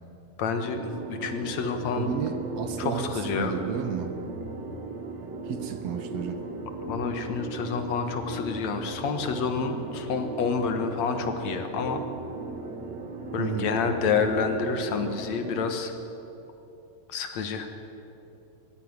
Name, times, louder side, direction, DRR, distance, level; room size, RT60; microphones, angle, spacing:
voice 1, 0.4-0.8 1.1-2.1 2.8-3.6 6.9-12.0 13.3-15.9 17.1-17.7, left 5 dB, 70° left, 7 dB, 2.6 m, -28 dB
sound 1, 0.6-15.7, right 2 dB, 45° right, 1.8 m, -37 dB
voice 2, 2.0-4.1 5.5-6.5 13.4-13.7, right 8 dB, 65° right, 8 dB, 2.1 m, -32 dB
21.0 x 15.0 x 9.7 m, 3.0 s
omnidirectional pair, 3.4 m